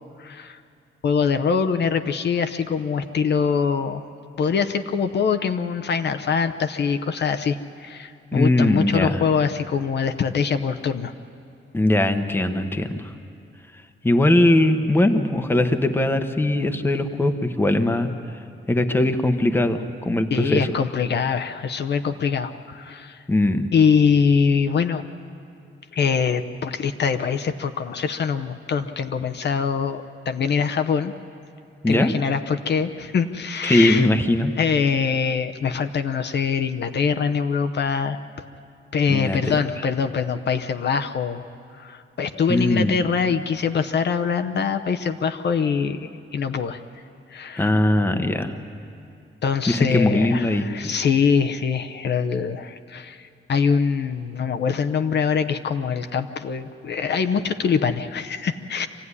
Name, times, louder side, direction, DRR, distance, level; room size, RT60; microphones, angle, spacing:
voice 1, 0.2-0.6 1.0-4.1 4.4-11.1 20.3-23.2 23.7-25.0 25.9-31.1 31.9-34.1 34.6-38.2 38.9-41.4 41.8-46.8 47.3-47.7 49.4-58.9, left 6 dB, 55° left, 7 dB, 0.8 m, -23 dB
voice 2, 8.3-9.2 11.7-13.1 14.0-18.1 18.7-20.7 23.3-23.7 31.8-32.1 33.6-34.5 39.1-39.6 42.5-42.9 47.6-48.5 49.7-50.7, left 1 dB, 10° left, 7 dB, 0.9 m, -20 dB
25.5 x 16.0 x 9.7 m, 2.5 s
wide cardioid pair, 170°, 21 cm